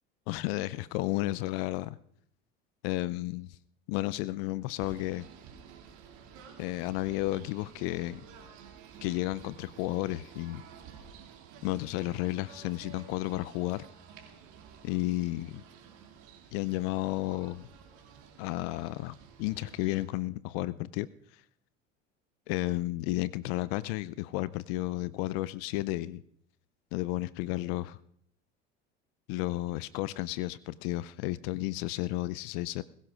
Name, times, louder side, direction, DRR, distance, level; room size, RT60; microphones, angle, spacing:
voice 1, 0.3-2.0 2.8-3.6 3.9-5.3 6.6-8.2 9.0-10.6 11.6-13.8 14.8-15.6 16.5-17.7 18.4-21.1 22.5-26.2 26.9-28.0 29.3-32.8, left 17 dB, 60° left, 19 dB, 0.6 m, -32 dB
Singing / Bird, 4.8-20.0, right 7 dB, 55° right, 2.6 m, -52 dB
21.5 x 15.5 x 2.4 m, 0.67 s
hypercardioid pair, 75°, 34 cm